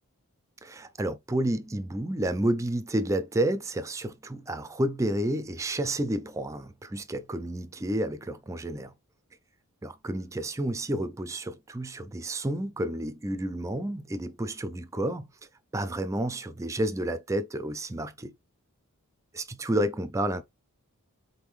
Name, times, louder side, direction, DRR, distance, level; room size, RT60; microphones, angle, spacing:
voice 1, 0.6-8.9 9.8-15.3 15.7-18.3 19.3-20.4, right 1 dB, 15° right, 0.4 m, -30 dB
3.9 x 3.6 x 3.1 m
head